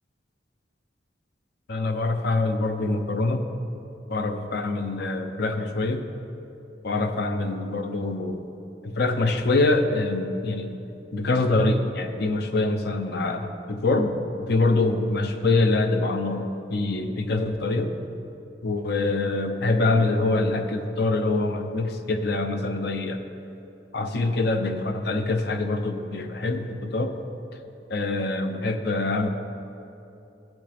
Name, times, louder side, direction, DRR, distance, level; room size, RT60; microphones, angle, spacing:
voice 1, 1.7-3.5 4.1-6.1 6.8-8.5 8.8-10.8 11.1-18.0 18.6-23.2 23.9-27.2 27.9-29.3, left 2 dB, 60° left, 7 dB, 0.7 m, -25 dB
16.0 x 6.1 x 3.5 m, 2.8 s
head